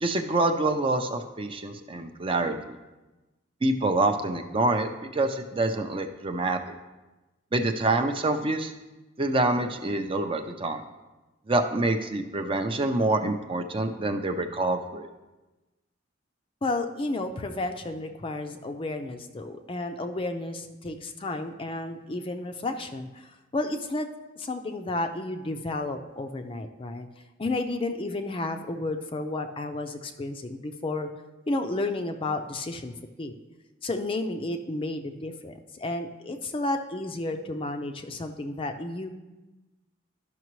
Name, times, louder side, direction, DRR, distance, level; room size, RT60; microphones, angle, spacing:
voice 1, 0.0-2.8 3.6-6.7 7.5-8.7 9.2-10.8 11.5-15.1, right 2 dB, 30° right, 7 dB, 0.5 m, -26 dB
voice 2, 16.6-24.1 24.4-27.1 27.4-31.1 31.5-33.3 33.8-39.2, left 2 dB, 30° left, 6 dB, 0.4 m, -32 dB
12.5 x 5.8 x 3.1 m, 1.1 s
head